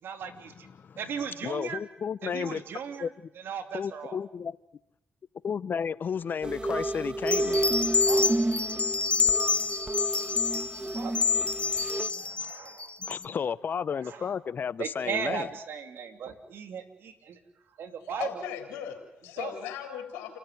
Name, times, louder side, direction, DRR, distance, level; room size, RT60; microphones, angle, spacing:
voice 1, 0.0-0.7 1.0-1.8 2.2-3.1 3.3-4.2 8.1-8.4 10.9-11.2 12.1-12.9 14.0-14.4 14.8-17.4 17.8-18.5 19.4-19.5, right 6 dB, 70° right, 7 dB, 2.9 m, -37 dB
voice 2, 1.4-2.6 3.0-3.1 3.7-4.6 5.4-7.8 10.9-11.0 12.1-12.5 13.0-15.5, left 7 dB, 55° left, 18 dB, 0.8 m, -33 dB
sound 1, 6.4-12.1, right 2 dB, 25° right, 1.3 m, -30 dB
sound 2, 7.3-13.2, left 5 dB, 30° left, 1.2 m, -28 dB
voice 3, 18.2-20.4, left 9 dB, 90° left, 2 dB, 3.9 m, -37 dB
28.5 x 14.5 x 9.4 m, 0.84 s
supercardioid pair, 55°, 4 cm